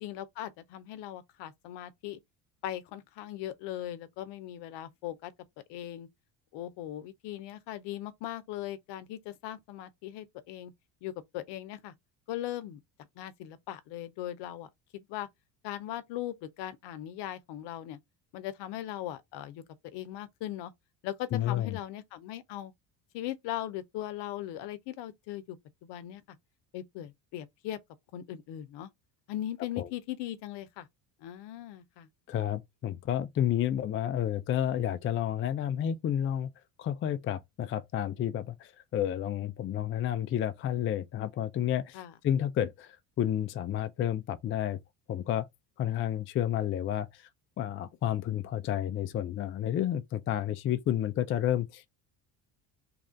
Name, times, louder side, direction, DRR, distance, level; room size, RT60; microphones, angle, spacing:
voice 1, 0.0-2.2 2.6-5.3 5.7-6.1 6.5-10.7 11.0-11.9 12.3-12.8 13.2-15.3 15.6-18.0 18.3-19.6 19.9-20.7 21.0-22.7 23.1-25.6 25.8-26.2 26.7-27.8 28.1-28.9 29.3-30.9 31.2-32.1 41.9-42.1, left 13 dB, 65° left, 0.8 m, -39 dB
voice 2, 21.3-21.8 29.8-29.9 32.3-36.5 36.8-44.8 45.1-45.5 45.8-47.2 47.6-51.9, left 11 dB, 30° left, 0.4 m, -30 dB
3.3 x 2.5 x 3.7 m
supercardioid pair, 100°, 45 cm